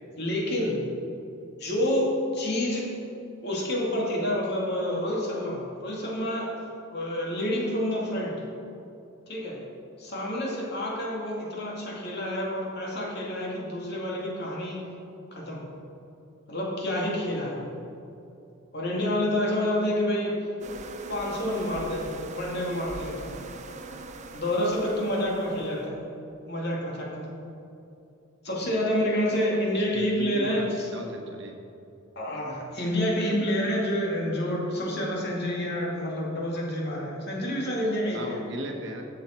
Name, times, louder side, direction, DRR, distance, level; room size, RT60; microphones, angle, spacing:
voice 1, 0.2-0.8 1.6-2.9 3.4-6.5 6.9-8.4 9.3-9.6 10.0-14.8 15.3-15.7 16.5-17.7 18.7-20.5 21.1-23.4 24.3-26.1 26.5-27.3 28.4-30.9 32.2-38.4, left 1 dB, 55° left, -3 dB, 2.4 m, -28 dB
sound 1, 20.6-25.9, right 3 dB, 35° right, 0.6 m, -42 dB
voice 2, 29.4-31.5 38.1-39.0, equal, 60° right, 2 dB, 1.3 m, -37 dB
13.0 x 7.6 x 4.5 m, 2.8 s
head